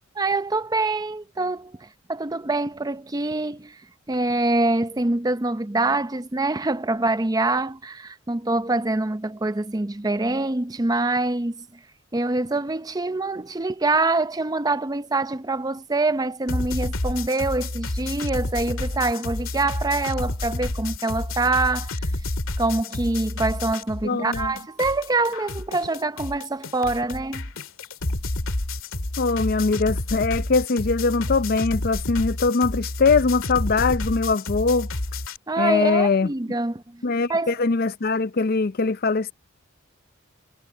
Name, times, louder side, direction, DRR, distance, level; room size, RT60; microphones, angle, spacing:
voice 1, 0.2-3.8 4.1-11.6 12.1-22.1 22.6-27.5 35.5-37.0 37.3-37.5, right 2 dB, 20° right, 0.6 m, -25 dB
sound 1, 16.5-24.1 24.3-35.4, left 2 dB, 85° left, 1.9 m, -30 dB
voice 2, 24.0-24.5 29.2-34.9 35.6-36.3 37.0-39.3, left 4 dB, 45° left, 0.5 m, -22 dB
head